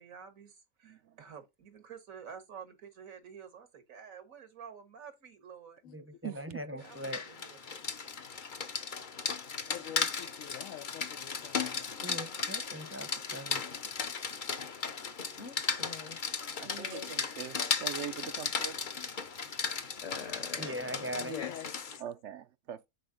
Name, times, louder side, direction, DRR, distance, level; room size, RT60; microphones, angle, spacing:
voice 1, 0.0-5.8 6.6-7.9, right 7 dB, 85° right, 1.9 m, -50 dB
voice 2, 0.8-1.2 6.2-6.6 16.6-18.8 19.5-19.8 20.7-20.8 22.0-22.9, right 9 dB, 65° right, 0.8 m, -43 dB
voice 3, 5.9-7.2 12.0-13.6 20.6-21.3, equal, 10° right, 0.7 m, -40 dB
Rain, 6.8-22.0, left 5 dB, 45° left, 0.9 m, -36 dB
voice 4, 9.7-11.9 21.3-21.7, left 11 dB, 80° left, 1.0 m, -45 dB
voice 5, 15.4-16.3 16.6-17.1 20.0-21.5 21.9-22.0, left 5 dB, 60° left, 2.1 m, -44 dB
8.4 x 4.5 x 3.9 m
omnidirectional pair, 1.4 m